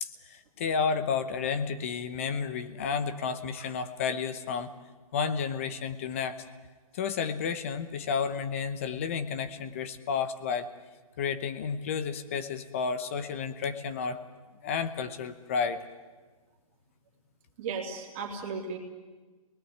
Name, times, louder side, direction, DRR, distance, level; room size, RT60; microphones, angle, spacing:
voice 1, 0.0-4.7 5.1-6.4 6.9-10.7 11.2-14.2 14.6-15.8, left 6 dB, 20° left, 11 dB, 0.9 m, -31 dB
voice 2, 17.6-18.8, right 5 dB, 20° right, -1 dB, 3.1 m, -35 dB
28.0 x 20.0 x 9.6 m, 1.3 s
hypercardioid pair, 175°, 19 cm